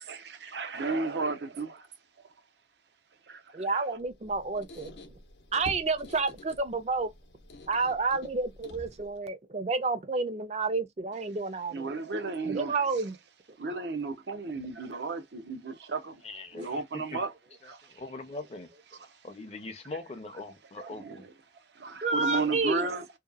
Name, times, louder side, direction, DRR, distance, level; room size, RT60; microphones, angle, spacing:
voice 1, 0.1-1.9 3.3-3.8 11.7-12.8 13.6-16.2 16.5-17.3 17.7-17.9 20.8-21.3 21.7-23.1, right 3 dB, 80° right, 0.6 m, -34 dB
voice 2, 3.5-4.9 5.5-7.1 7.7-11.9 12.5-13.2 22.0-22.9, right 3 dB, 35° right, 0.4 m, -30 dB
Squeak, 4.0-9.2, left 1 dB, 80° left, 0.6 m, -48 dB
voice 3, 16.2-17.2 17.6-18.7 19.2-21.2, left 2 dB, 35° left, 0.5 m, -42 dB
2.7 x 2.2 x 2.3 m
head